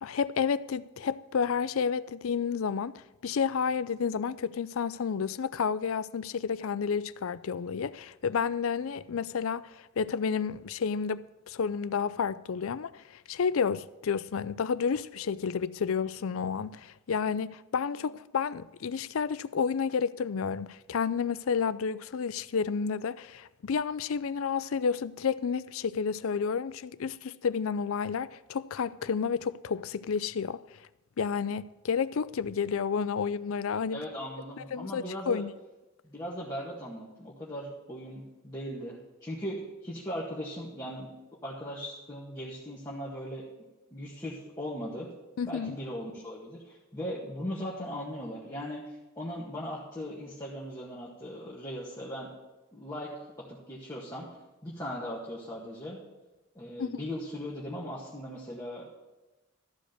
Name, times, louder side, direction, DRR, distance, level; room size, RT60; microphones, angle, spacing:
voice 1, 0.0-2.9 3.2-30.6 31.2-34.0 34.6-35.5 45.4-45.8 56.8-57.0, left 6 dB, 75° left, 0.4 m, -31 dB
voice 2, 33.9-35.4 36.0-41.1 41.4-43.4 43.9-45.1 45.4-52.3 52.7-53.1 53.5-54.3 54.6-56.0 56.6-58.9, equal, 15° left, 1.8 m, -38 dB
14.0 x 5.1 x 7.9 m
head